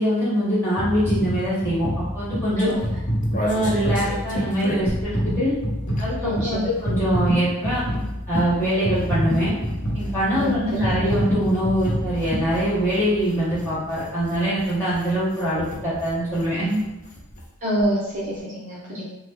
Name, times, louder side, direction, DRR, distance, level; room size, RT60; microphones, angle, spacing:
voice 1, 0.0-2.7 3.4-5.5 6.0-7.8 8.3-9.5 9.9-16.8, equal, 10° left, -12 dB, 1.4 m, -23 dB
sound 1, 0.8-13.2 13.7-13.9, equal, 60° left, 0.8 m, -27 dB
sound 2, 2.6-6.3 6.6-17.5 17.8-17.9 18.1-18.4, left 1 dB, 35° left, 0.4 m, -37 dB
voice 2, 6.2-6.7 10.4-10.9 17.6-19.0, equal, 35° right, -9 dB, 0.7 m, -26 dB
3.0 x 2.1 x 3.5 m, 0.99 s
head